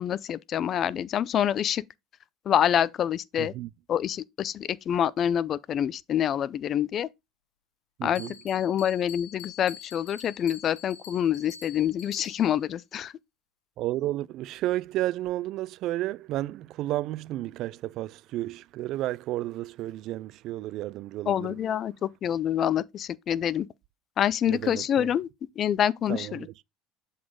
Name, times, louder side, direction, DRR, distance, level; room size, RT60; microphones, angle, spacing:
voice 1, 0.0-1.8 2.5-3.5 3.9-7.1 8.0-13.1 21.3-23.7 24.2-25.3 25.6-26.5, left 10 dB, 45° left, 0.4 m, -26 dB
voice 2, 3.4-3.7 8.0-8.3 13.8-21.5 24.5-25.1 26.1-26.5, right 15 dB, 60° right, 0.3 m, -32 dB
Bell, 8.1-12.7, left 8 dB, 85° left, 0.9 m, -46 dB
7.4 x 4.2 x 3.7 m
supercardioid pair, 95°, 0 cm